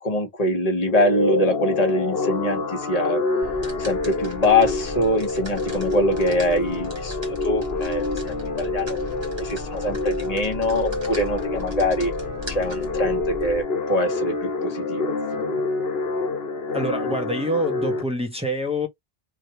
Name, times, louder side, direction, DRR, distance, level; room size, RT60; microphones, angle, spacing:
voice 1, 0.0-3.2 3.8-7.2 7.4-9.0 9.4-12.1 12.5-15.6, left 1 dB, 40° left, 1.3 m, -24 dB
sound 1, 0.9-18.0, left 3 dB, 70° left, 1.2 m, -27 dB
sound 2, 3.4-13.6, left 1 dB, 25° right, 1.4 m, -37 dB
voice 2, 16.7-18.9, equal, 5° right, 0.9 m, -26 dB
3.3 x 2.5 x 2.7 m
omnidirectional pair, 1.1 m